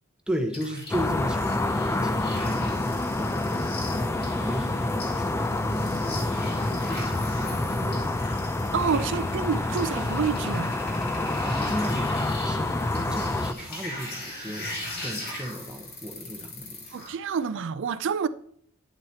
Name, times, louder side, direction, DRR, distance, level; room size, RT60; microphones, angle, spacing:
voice 1, 0.3-8.1 11.4-17.0, equal, 5° right, 0.9 m, -36 dB
sound 1, 0.5-17.1, left 1 dB, 50° left, 2.3 m, -40 dB
sound 2, 0.9-13.5, left 2 dB, 10° left, 0.4 m, -27 dB
voice 2, 8.7-10.8 16.9-18.3, right 6 dB, 60° right, 0.4 m, -28 dB
9.9 x 7.9 x 2.8 m
head